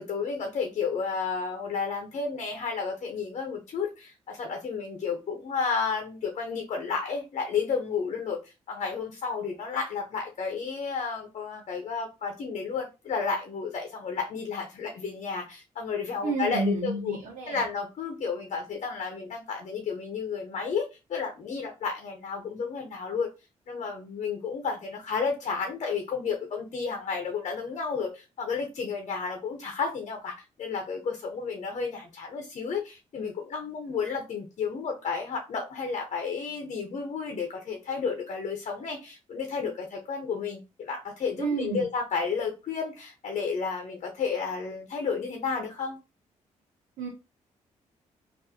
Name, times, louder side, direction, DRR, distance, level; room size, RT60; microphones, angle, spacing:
voice 1, 0.0-17.2 17.5-23.3 23.7-46.0, left 5 dB, 60° left, 3 dB, 0.8 m, -32 dB
voice 2, 16.2-17.6 41.4-41.9 47.0-47.1, right 3 dB, 85° right, -2 dB, 0.9 m, -30 dB
3.5 x 2.6 x 2.8 m, 0.27 s
cardioid pair, 85°, 13 cm